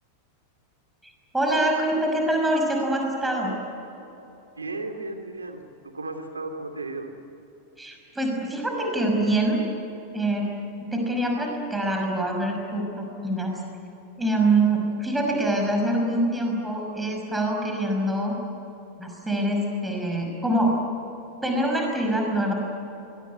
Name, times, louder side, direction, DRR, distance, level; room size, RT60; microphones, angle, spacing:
voice 1, 1.3-3.5 7.8-9.6 10.1-10.5 10.9-13.6 14.2-18.4 19.0-20.8 21.4-22.5, right 1 dB, 5° right, 1 dB, 5.8 m, -25 dB
voice 2, 4.6-5.6 5.9-7.1, right 2 dB, 75° right, 5 dB, 2.8 m, -34 dB
24.5 x 22.0 x 9.6 m, 3.0 s
figure-of-eight pair, 90°, 0 cm